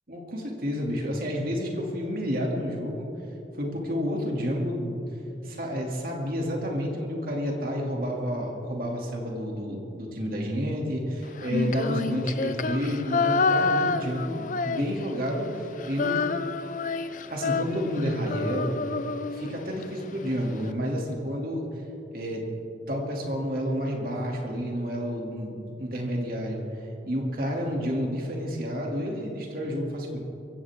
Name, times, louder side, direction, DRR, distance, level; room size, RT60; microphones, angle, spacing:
voice 1, 0.1-3.1 3.6-5.0 5.4-16.2 17.3-18.8 19.3-21.6 22.1-22.4 22.9-26.6 27.0-30.2, equal, 50° right, -1 dB, 2.8 m, -30 dB
Female singing, 11.4-15.3 15.6-19.9, left 4 dB, 45° left, 0.5 m, -28 dB
23.0 x 16.0 x 3.7 m, 2.8 s
head